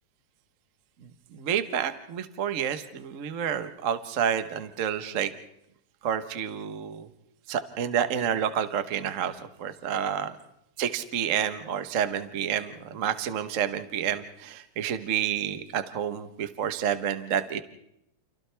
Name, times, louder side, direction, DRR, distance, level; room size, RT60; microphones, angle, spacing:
voice 1, 1.3-5.3 6.0-7.1 7.5-10.3 10.8-17.6, right 9 dB, 80° right, 10 dB, 0.7 m, -29 dB
30.0 x 28.5 x 3.4 m, 0.78 s
omnidirectional pair, 3.3 m